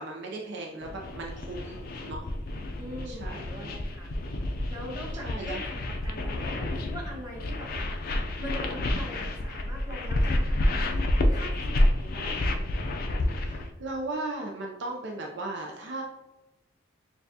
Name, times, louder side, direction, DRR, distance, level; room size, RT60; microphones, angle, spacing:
voice 1, 0.0-2.3 3.1-3.4 5.2-5.6 13.3-16.0, right 2 dB, 60° right, 1 dB, 0.5 m, -37 dB
sound 1, 0.8-13.7, left 1 dB, 50° left, 0.4 m, -29 dB
voice 2, 2.8-4.1 4.7-8.0 8.4-12.5, equal, 20° right, -4 dB, 1.1 m, -42 dB
6.5 x 2.3 x 2.7 m, 0.98 s
head